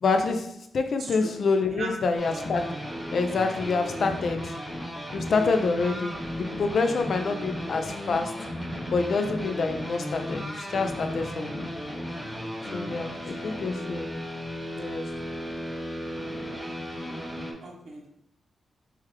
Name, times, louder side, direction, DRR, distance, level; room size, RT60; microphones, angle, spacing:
voice 1, 0.0-2.8 3.1-4.5 5.1-8.4 8.9-11.7 12.7-14.2 14.8-15.1, left 4 dB, 65° left, 7 dB, 0.4 m, -27 dB
sound 1, 2.2-17.5, equal, 5° left, 1.1 m, -35 dB
voice 2, 13.4-13.8 17.6-18.1, right 3 dB, 75° right, 0 dB, 0.9 m, -39 dB
3.4 x 3.3 x 3.2 m, 0.74 s
cardioid pair, 80°, 0 cm